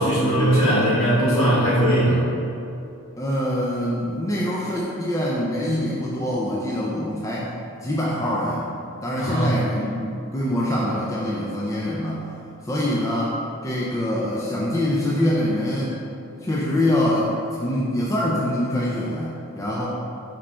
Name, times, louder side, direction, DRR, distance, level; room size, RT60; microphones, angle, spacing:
voice 1, 0.0-2.2 9.2-9.5, equal, 65° left, -8 dB, 1.3 m, -19 dB
voice 2, 3.2-7.5 7.8-8.7 9.0-12.3 12.6-13.4 13.6-16.0 16.4-19.9, left 1 dB, 15° left, -6 dB, 0.3 m, -24 dB
4.8 x 4.3 x 2.3 m, 2.7 s
head